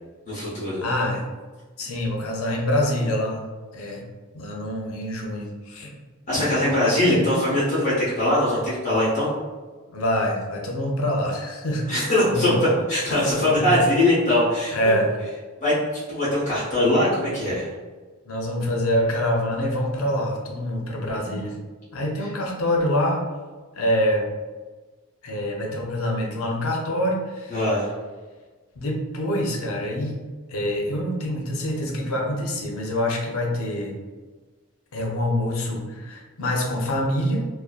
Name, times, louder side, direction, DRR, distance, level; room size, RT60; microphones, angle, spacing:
voice 1, 0.3-0.8 6.3-9.3 11.9-14.9 15.6-15.7 16.1-17.7 27.5-27.9, left 1 dB, 35° left, -9 dB, 0.7 m, -21 dB
voice 2, 0.8-1.2 1.8-3.4 3.7-4.0 4.3-6.0 6.4-6.6 9.9-12.0 12.2-12.6 13.1-13.8 14.7-15.1 18.2-21.5 21.9-23.2 23.7-24.3 25.2-27.6 28.8-30.2 30.5-34.0 34.9-37.5, left 1 dB, 70° left, 0 dB, 0.5 m, -25 dB
2.5 x 2.1 x 2.3 m, 1.3 s
head